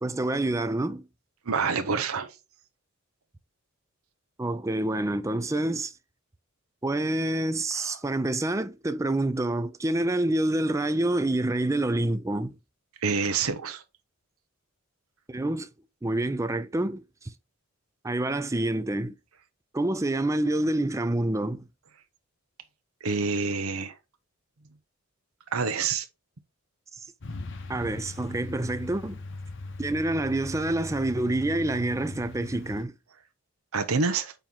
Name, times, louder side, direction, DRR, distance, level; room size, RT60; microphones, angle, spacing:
voice 1, 0.0-1.1 4.4-5.9 6.8-12.6 15.3-15.7 16.0-17.3 18.0-19.2 19.7-21.6 26.9-27.0 27.7-29.2 29.8-32.9, right 1 dB, 15° right, 0.4 m, -27 dB
voice 2, 1.5-2.4 7.7-8.0 13.0-13.8 23.0-23.9 25.5-26.1 33.7-34.3, right 5 dB, 80° right, 0.8 m, -27 dB
Truck, 27.2-32.8, left 2 dB, 55° left, 0.8 m, -39 dB
9.0 x 3.0 x 3.8 m
head